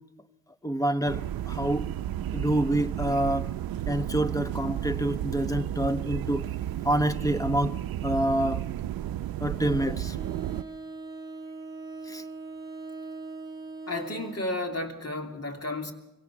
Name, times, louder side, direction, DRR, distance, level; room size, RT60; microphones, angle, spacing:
voice 1, 0.6-1.9 2.3-3.5 3.9-6.5 6.8-8.7 9.4-10.2 12.1-12.2, right 1 dB, 10° left, 10 dB, 1.1 m, -27 dB
sound 1, 1.1-10.6, right 11 dB, 80° right, 0.6 m, -32 dB
Bowed string instrument, 9.5-14.5, right 3 dB, 10° right, 1.5 m, -41 dB
voice 2, 13.9-15.9, left 2 dB, 45° left, 4 dB, 3.0 m, -32 dB
23.0 x 17.0 x 7.4 m, 0.98 s
cardioid pair, 70°, 35 cm